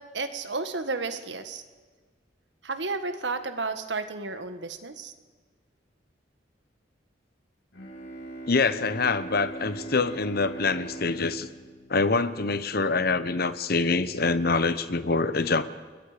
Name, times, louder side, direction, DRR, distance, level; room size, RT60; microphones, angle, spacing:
voice 1, 0.0-1.6 2.6-5.1, right 3 dB, 75° right, 9 dB, 1.7 m, -32 dB
Bowed string instrument, 7.7-12.7, right 2 dB, 85° left, 4.2 m, -40 dB
voice 2, 8.5-11.5 11.9-15.6, left 3 dB, 55° left, 13 dB, 1.0 m, -25 dB
29.0 x 21.5 x 5.2 m, 1.5 s
head